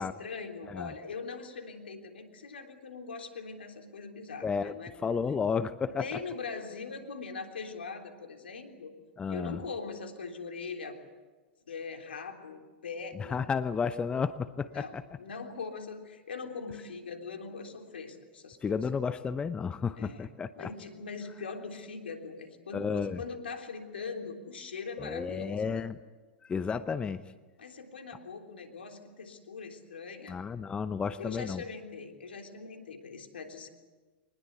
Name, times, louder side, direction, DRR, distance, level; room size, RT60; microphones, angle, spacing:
voice 1, 0.0-5.1 5.8-8.9 9.3-11.0 11.7-13.6 14.7-18.8 20.0-20.3 20.6-25.8 27.6-30.4 31.2-33.7, left 4 dB, 80° left, 4 dB, 3.4 m, -41 dB
voice 2, 4.4-4.7 5.0-6.1 9.2-9.6 13.3-15.0 18.6-20.7 22.7-23.2 25.0-26.0 26.5-27.2 30.3-31.6, left 5 dB, 15° left, 13 dB, 0.8 m, -32 dB
24.5 x 20.5 x 8.2 m, 1.3 s
hypercardioid pair, 105°, 6 cm